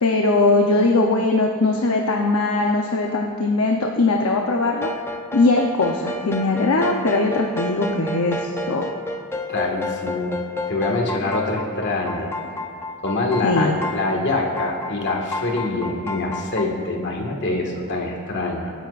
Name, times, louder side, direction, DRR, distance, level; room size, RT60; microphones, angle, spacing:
voice 1, 0.0-4.9 5.3-8.9 13.4-13.7, left 2 dB, 70° left, 1 dB, 0.8 m, -20 dB
sound 1, 4.7-16.6, left 2 dB, 10° left, 0.7 m, -31 dB
voice 2, 9.5-10.4 10.7-12.3 13.0-18.7, left 2 dB, 55° left, 0 dB, 1.8 m, -25 dB
26.0 x 10.0 x 2.5 m, 2.3 s
head